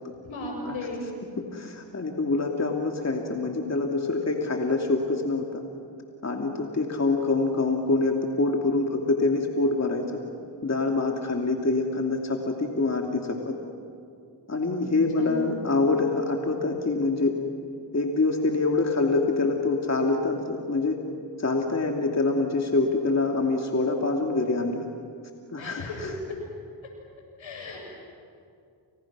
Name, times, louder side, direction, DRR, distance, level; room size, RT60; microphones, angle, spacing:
voice 1, 0.2-1.0 14.8-14.9 15.2-15.5 25.6-26.6 27.4-27.8, left 2 dB, 80° left, 1 dB, 7.6 m, -35 dB
voice 2, 1.4-5.6 6.2-10.0 10.6-13.5 14.5-17.3 17.9-21.0 21.4-24.9 25.5-26.1, left 3 dB, 35° left, 2 dB, 2.7 m, -25 dB
30.0 x 28.0 x 6.2 m, 2.4 s
cardioid pair, 60°, 46 cm